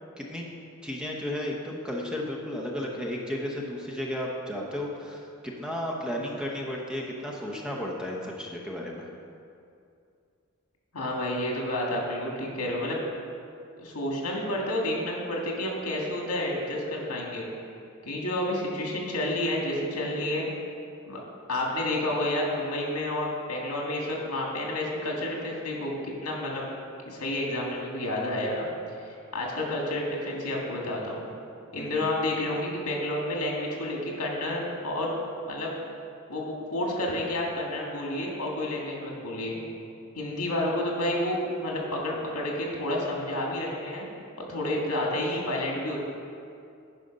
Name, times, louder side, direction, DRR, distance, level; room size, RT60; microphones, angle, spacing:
voice 1, 0.2-0.5 0.8-9.1 31.8-32.1, left 1 dB, 5° right, -2 dB, 0.8 m, -33 dB
voice 2, 10.9-13.0 13.8-17.5 18.0-20.5 21.1-21.2 21.5-26.6 27.1-28.7 29.0-31.3 31.7-35.1 35.5-35.7 36.3-39.6 40.2-44.1 44.5-46.0, left 1 dB, 85° left, -1 dB, 1.9 m, -30 dB
10.5 x 4.9 x 5.2 m, 2.5 s
head